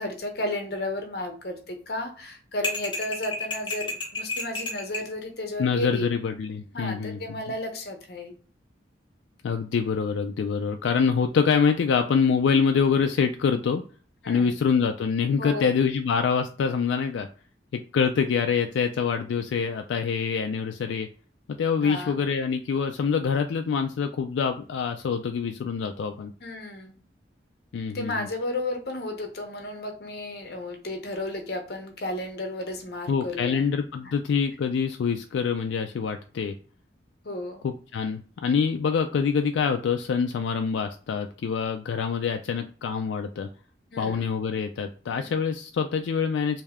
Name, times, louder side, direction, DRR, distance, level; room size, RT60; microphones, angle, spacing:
voice 1, 0.0-6.1 6.7-8.4 14.2-14.6 15.4-15.7 21.8-22.2 26.4-27.0 27.9-33.7 34.0-34.1 37.2-37.6 43.9-44.2, left 1 dB, 55° left, 3 dB, 0.8 m, -33 dB
sound 1, 2.6-5.1, left 2 dB, 25° left, 0.7 m, -31 dB
voice 2, 5.6-7.4 9.4-13.8 14.3-17.3 17.7-21.1 21.6-26.3 27.7-28.3 33.1-36.5 37.6-43.5 44.0-46.6, left 6 dB, 85° left, 6 dB, 0.3 m, -25 dB
3.3 x 2.7 x 3.4 m, 0.40 s
head